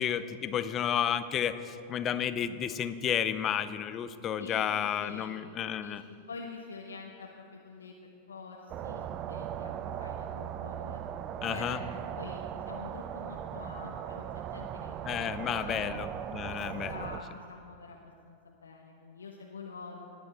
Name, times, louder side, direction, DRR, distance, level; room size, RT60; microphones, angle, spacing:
voice 1, 0.0-6.0 11.4-11.8 15.0-17.0, left 9 dB, 30° left, 13 dB, 0.7 m, -32 dB
voice 2, 4.4-5.4 5.8-11.0 11.5-16.0 16.5-20.2, left 4 dB, 70° left, 0 dB, 1.1 m, -46 dB
sound 1, 8.7-17.2, right 9 dB, 35° right, 0.6 m, -38 dB
18.0 x 10.5 x 4.4 m, 2.4 s
figure-of-eight pair, 90°, 0 cm